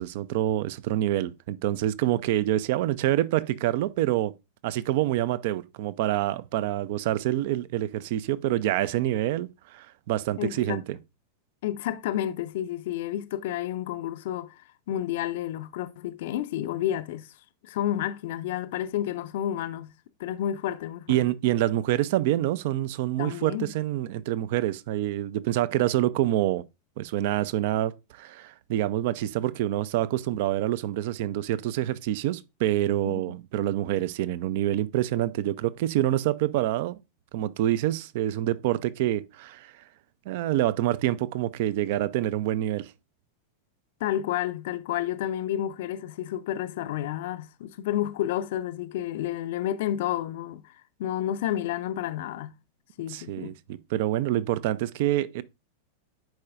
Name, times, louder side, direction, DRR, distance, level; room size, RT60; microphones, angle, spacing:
voice 1, 0.0-4.3 4.6-11.0 21.1-26.7 27.0-37.0 37.3-39.7 40.3-42.9 53.1-55.4, right 13 dB, 50° right, 0.4 m, -26 dB
voice 2, 10.4-10.8 11.6-14.6 14.9-17.3 17.6-19.9 20.2-21.2 23.2-23.7 33.0-33.4 44.0-50.6 51.0-52.6 53.0-53.6, left 12 dB, 55° left, 0.5 m, -30 dB
10.5 x 4.6 x 2.4 m
figure-of-eight pair, 90°, 0 cm